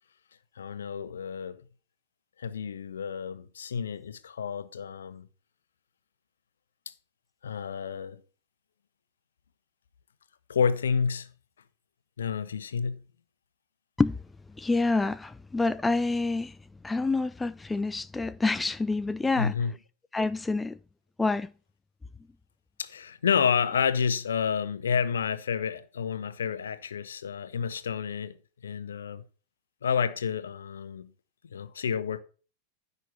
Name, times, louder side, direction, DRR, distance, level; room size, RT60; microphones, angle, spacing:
voice 1, 0.6-1.6 2.4-5.3 7.4-8.2 10.5-11.3 12.2-13.1 19.4-19.7 22.8-28.4 28.6-29.2 29.8-31.1 31.5-32.2, left 6 dB, 65° left, 1.2 m, -29 dB
voice 2, 14.6-16.5 16.8-19.5 20.1-20.8 21.2-21.5, left 3 dB, 10° left, 0.5 m, -27 dB
15.0 x 5.8 x 6.9 m
figure-of-eight pair, 90°, 0 cm